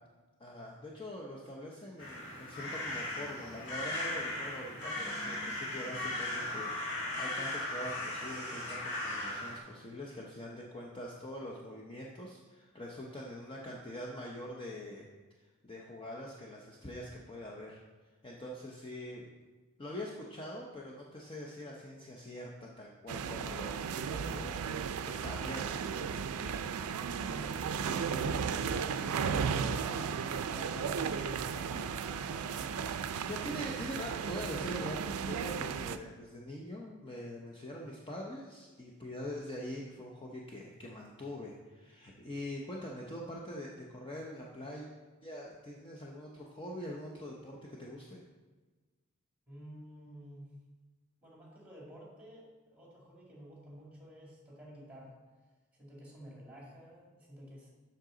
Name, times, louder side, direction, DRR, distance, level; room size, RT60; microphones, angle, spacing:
voice 1, 0.4-15.1 15.6-17.8 18.2-19.3 19.8-23.8 24.1-24.6 25.1-26.1 32.5-44.9 45.2-48.2, left 1 dB, 25° left, -2 dB, 0.7 m, -44 dB
sound 1, 2.0-9.6, left 1 dB, 55° left, 1.6 m, -37 dB
sound 2, 23.1-36.0, right 6 dB, 90° right, 0.4 m, -35 dB
voice 2, 27.1-28.9 29.5-31.5 49.5-50.5 51.2-55.2 55.7-57.7, equal, 5° right, -4 dB, 2.1 m, -51 dB
Shout / Cheering, 28.0-33.4, right 3 dB, 30° right, 1.0 m, -54 dB
7.8 x 5.8 x 3.8 m, 1.3 s
head